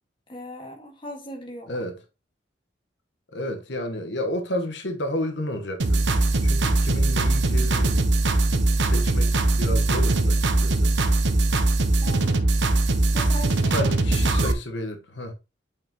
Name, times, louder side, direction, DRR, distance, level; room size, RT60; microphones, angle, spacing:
voice 1, 0.3-1.8 12.0-12.4 13.1-14.3, equal, 30° left, 1.8 m, -38 dB
voice 2, 3.3-6.1 6.4-7.9 8.8-10.9 13.7-15.3, left 1 dB, 80° left, 1.3 m, -31 dB
sound 1, 5.8-14.5, right 2 dB, 80° right, 0.9 m, -21 dB
8.1 x 5.7 x 3.0 m
head